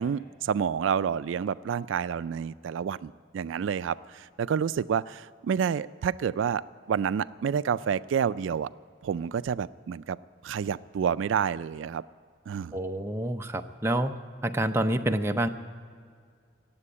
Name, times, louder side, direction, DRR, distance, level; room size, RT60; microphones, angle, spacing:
voice 1, 0.0-8.7 9.0-10.2 10.4-12.0 12.5-12.8, right 7 dB, 80° right, 16 dB, 0.3 m, -29 dB
voice 2, 12.7-14.2 14.4-15.5, right 1 dB, 15° right, 5 dB, 0.5 m, -27 dB
18.5 x 7.7 x 9.6 m, 2.1 s
head